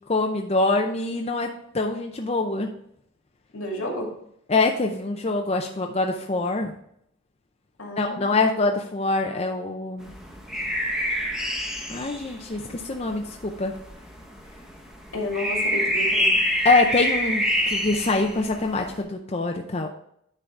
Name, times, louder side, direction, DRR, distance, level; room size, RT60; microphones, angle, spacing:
voice 1, 0.1-1.5 1.7-2.7 4.5-6.7 8.0-10.1 11.9-13.7 16.6-19.9, left 3 dB, 30° left, 2 dB, 0.5 m, -24 dB
voice 2, 3.5-4.1 7.8-8.4 15.1-16.4, left 1 dB, 80° left, -1 dB, 2.5 m, -31 dB
sound 1, 10.0-19.0, equal, 5° right, 0.9 m, -27 dB
9.9 x 3.9 x 4.5 m, 0.73 s
head